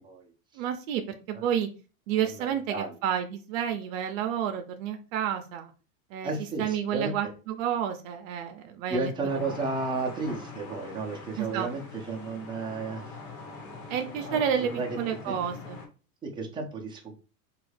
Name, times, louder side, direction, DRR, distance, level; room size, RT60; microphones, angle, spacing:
voice 1, 0.0-0.6 1.3-1.4 2.2-2.9 6.2-7.1 8.9-13.2 14.3-15.0 16.2-17.1, right 3 dB, 10° right, 0 dB, 0.5 m, -33 dB
voice 2, 0.6-1.7 2.1-5.7 6.1-6.3 6.6-9.1 9.4-9.6 11.4-11.7 13.9-15.8, right 9 dB, 65° right, 6 dB, 0.6 m, -30 dB
sound 1, 9.3-15.9, left 4 dB, 80° left, 1.1 m, -43 dB
3.1 x 2.4 x 3.2 m, 0.35 s
supercardioid pair, 140°, 42 cm